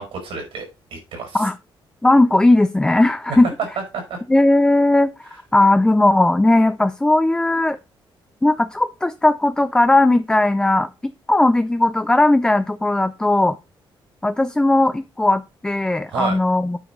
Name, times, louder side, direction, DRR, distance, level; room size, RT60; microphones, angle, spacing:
voice 1, 0.0-1.5 3.9-4.2 16.1-16.4, right 4 dB, 80° right, 3 dB, 5.3 m, -30 dB
voice 2, 2.0-3.5 4.3-7.8 8.4-13.6 14.2-16.8, left 2 dB, 10° left, 11 dB, 0.4 m, -17 dB
8.9 x 5.1 x 5.1 m, 0.29 s
cardioid pair, 135°, 9 cm